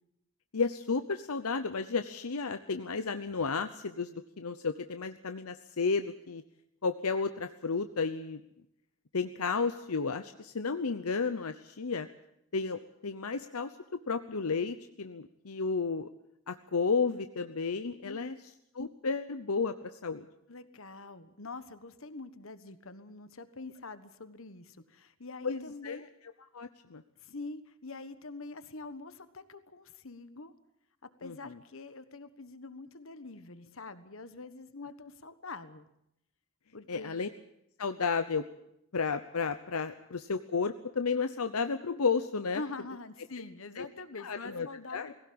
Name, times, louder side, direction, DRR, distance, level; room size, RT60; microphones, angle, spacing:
voice 1, 0.5-6.4 6.8-8.4 9.1-12.1 12.5-16.1 16.5-18.3 18.8-20.3 25.4-26.1 26.5-27.0 31.2-31.5 36.9-37.3 37.8-38.4 38.9-42.6 43.8-43.9 44.2-45.1, left 4 dB, 85° left, 9 dB, 0.8 m, -32 dB
voice 2, 18.0-18.4 20.5-26.0 27.2-30.5 31.0-35.9 36.7-37.1 42.5-45.1, left 3 dB, 65° left, 12 dB, 1.4 m, -45 dB
19.5 x 17.0 x 8.7 m, 0.78 s
head